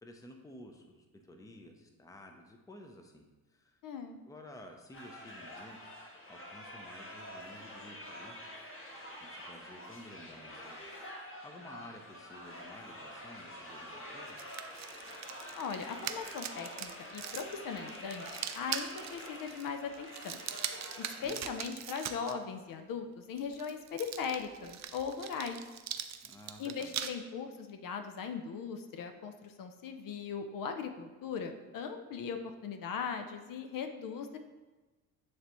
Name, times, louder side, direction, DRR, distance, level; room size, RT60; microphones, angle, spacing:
voice 1, 0.0-3.2 3.5-3.8 4.2-8.4 9.2-10.8 11.4-14.4 21.2-21.5 26.2-26.9, left 1 dB, 10° left, 4 dB, 0.6 m, -52 dB
voice 2, 3.8-4.2 15.5-20.4 21.0-25.6 26.6-34.4, left 6 dB, 60° left, 7 dB, 0.6 m, -39 dB
sound 1, 4.9-21.3, left 1 dB, 35° left, 1.3 m, -47 dB
sound 2, 14.3-22.3 23.4-27.1, right 10 dB, 50° right, 0.5 m, -42 dB
9.3 x 3.4 x 3.0 m, 1.2 s
cardioid pair, 110°, 37 cm